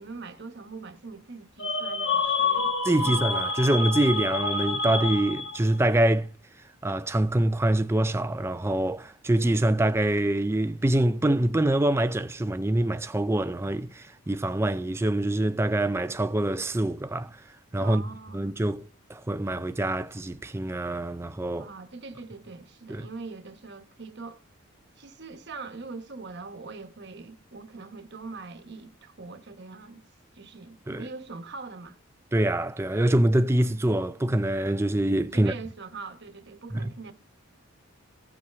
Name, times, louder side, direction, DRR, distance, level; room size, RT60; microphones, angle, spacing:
voice 1, 0.0-2.7 3.0-3.2 17.8-18.5 21.6-24.4 25.0-30.0 30.3-32.0 35.3-37.1, right 4 dB, 55° right, 1.0 m, -42 dB
sound 1, 1.6-5.8, left 3 dB, 60° left, 1.0 m, -28 dB
voice 2, 2.8-6.3 6.8-17.4 17.7-18.0 18.3-21.7 22.9-23.1 30.9-31.0 32.3-35.5 36.7-36.9, right 1 dB, 10° right, 0.3 m, -25 dB
16.5 x 5.5 x 3.4 m
head